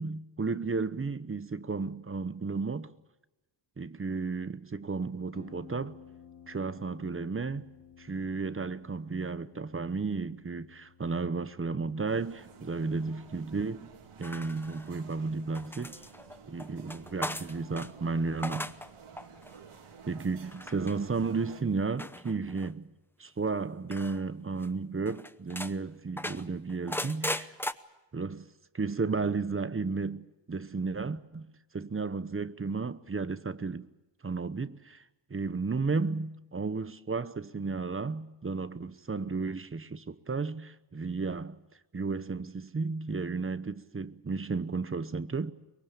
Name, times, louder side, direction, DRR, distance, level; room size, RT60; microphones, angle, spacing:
voice 1, 0.0-2.9 3.8-6.0 6.5-7.7 8.0-13.9 14.2-16.0 16.4-18.7 20.1-22.9 23.2-27.5 28.1-28.5 28.7-31.5 31.7-33.9 34.2-35.0 35.3-41.6 41.9-45.5, right 4 dB, 25° right, 0.9 m, -33 dB
Harp, 5.3-22.8, left 8 dB, 65° left, 6.5 m, -58 dB
sound 1, 12.1-21.6, right 6 dB, 90° right, 2.9 m, -52 dB
sound 2, 14.2-15.1 15.5-17.9 18.3-18.9 19.2-19.6 20.5-20.9 22.0-22.7 23.9-24.2 24.6-24.7 25.1-25.7 26.2-27.7, left 1 dB, 5° left, 0.8 m, -38 dB
24.0 x 22.5 x 7.0 m
wide cardioid pair, 120°, 49 cm